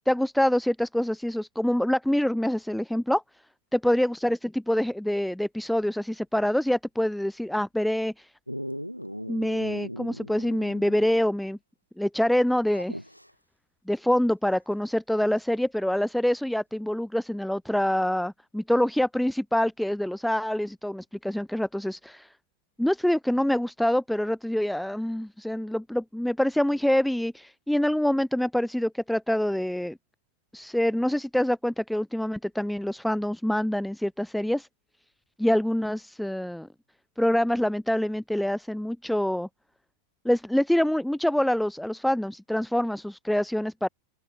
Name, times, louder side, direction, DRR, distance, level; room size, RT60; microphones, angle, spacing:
voice 1, 0.1-3.2 3.7-8.3 9.3-11.6 12.0-13.0 13.9-22.3 22.8-30.0 30.5-34.7 35.4-36.7 37.2-39.5 40.2-43.9, left 1 dB, ahead, 0.5 m, -26 dB
Dog, 8.5-11.2 11.5-11.6 12.7-13.3 15.4-15.5, equal, 90° left, 1.1 m, -38 dB
open air
figure-of-eight pair, 90°, 0 cm